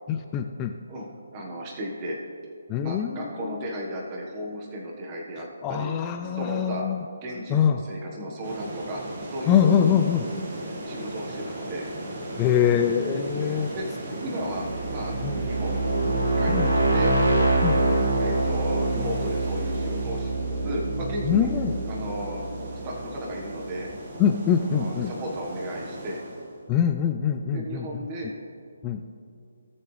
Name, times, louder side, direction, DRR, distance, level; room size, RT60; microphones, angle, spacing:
voice 1, 0.1-0.7 2.7-3.6 5.6-7.0 7.5-7.8 9.5-10.2 12.4-13.7 15.2-15.4 16.5-16.7 17.6-17.8 21.2-21.8 24.2-25.1 26.7-28.0 28.8-29.0, left 8 dB, 20° left, 6 dB, 0.4 m, -24 dB
voice 2, 0.9-2.2 2.8-6.0 6.4-6.9 7.2-9.0 9.3-10.3 10.8-11.9 13.3-16.5 16.9-17.2 18.2-21.5 21.9-22.5 22.7-23.9 24.7-26.2 27.5-28.3, equal, 25° right, -1 dB, 1.4 m, -34 dB
sound 1, 8.4-26.6, right 1 dB, 40° right, 1.7 m, -37 dB
sound 2, 14.5-23.3, right 2 dB, 80° right, 2.7 m, -25 dB
18.0 x 6.9 x 3.3 m, 2.4 s
hypercardioid pair, 160°, 0 cm